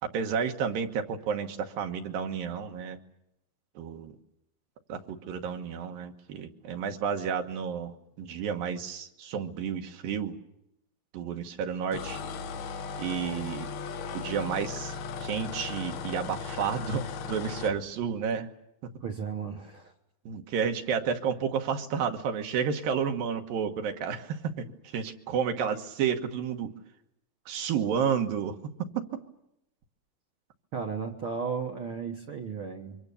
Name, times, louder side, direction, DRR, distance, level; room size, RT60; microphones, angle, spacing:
voice 1, 0.0-3.0 3.8-4.1 4.9-10.4 11.1-12.2 13.0-13.7 14.1-18.5 18.8-18.9 20.3-26.7 27.5-28.6 29.0-29.1, right 7 dB, 75° right, 5 dB, 3.1 m, -31 dB
sound 1, 11.9-17.8, left 5 dB, 85° left, 3.2 m, -37 dB
voice 2, 19.0-19.9 30.7-33.0, right 6 dB, 55° right, 3 dB, 1.6 m, -34 dB
26.0 x 24.0 x 7.0 m, 0.82 s
omnidirectional pair, 4.2 m